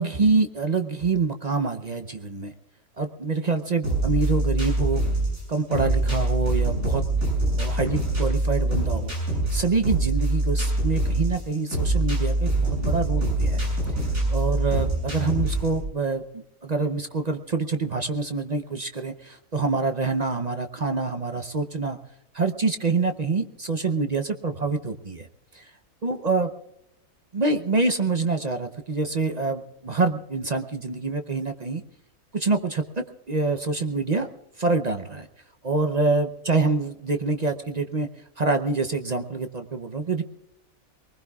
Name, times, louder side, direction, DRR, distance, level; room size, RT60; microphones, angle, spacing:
voice 1, 0.0-2.5 3.0-5.0 5.5-7.0 7.6-9.1 9.5-13.6 14.3-22.0 22.3-25.3 25.5-25.6 26.0-26.5 27.3-31.8 32.3-34.3 34.6-35.3 35.6-38.1 38.4-40.2, right 3 dB, 40° right, 7 dB, 0.6 m, -26 dB
sound 1, 3.8-15.8, right 2 dB, 70° right, 8.1 m, -24 dB
23.0 x 20.0 x 2.3 m, 0.84 s
omnidirectional pair, 1.5 m